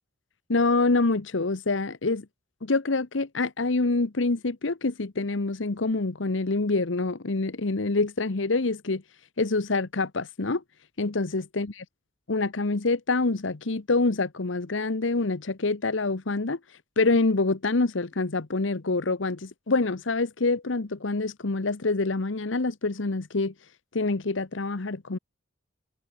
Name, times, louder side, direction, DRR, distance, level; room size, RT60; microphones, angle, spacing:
voice 1, 0.5-2.3 2.6-9.0 9.4-10.6 11.0-11.8 12.3-16.6 17.0-23.5 23.9-25.2, left 3 dB, 85° left, 1.1 m, -26 dB
head